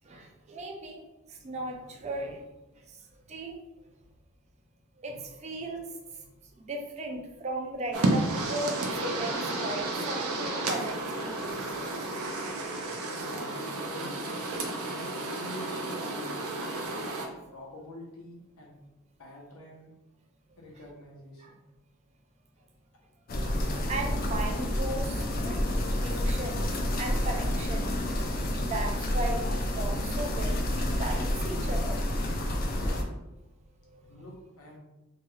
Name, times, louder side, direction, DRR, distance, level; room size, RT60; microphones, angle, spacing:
voice 1, 0.0-1.0 1.3-2.4 2.8-3.0 3.3-3.6 5.0-6.2 6.6-11.7 16.9-17.1 20.5-20.6 21.4-21.5 23.3-26.7 27.0-28.0 28.4-32.0 33.8-34.2, right 2 dB, 30° right, 1 dB, 0.4 m, -37 dB
sound 1, 7.9-17.3, right 2 dB, 80° right, 0.5 m, -32 dB
voice 2, 13.1-14.1 14.6-16.3 17.3-18.7 19.2-19.9 20.6-21.6 32.7-33.0 34.1-34.8, left 1 dB, 85° left, -2 dB, 0.9 m, -46 dB
sound 2, 23.3-33.0, left 1 dB, 40° left, 0.4 m, -29 dB
2.9 x 2.3 x 3.1 m, 0.98 s
head